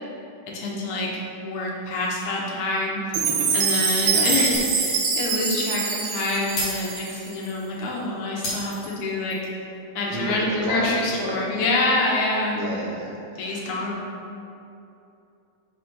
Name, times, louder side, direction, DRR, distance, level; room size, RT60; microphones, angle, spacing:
voice 1, 0.5-3.0 3.5-9.4 10.0-12.9 13.4-14.0, left 2 dB, 70° left, -3 dB, 2.3 m, -26 dB
Chime, 3.1-7.4, right 5 dB, 90° right, 2.5 m, -24 dB
voice 2, 3.8-4.3 10.1-10.4 10.6-11.3 12.5-13.9, right 2 dB, 70° right, -3 dB, 2.0 m, -33 dB
Shatter, 4.5-5.1 5.4-5.6 6.6-7.6 8.4-9.5, left 1 dB, 50° left, 2.3 m, -32 dB
5.6 x 4.9 x 5.4 m, 2.8 s
omnidirectional pair, 3.7 m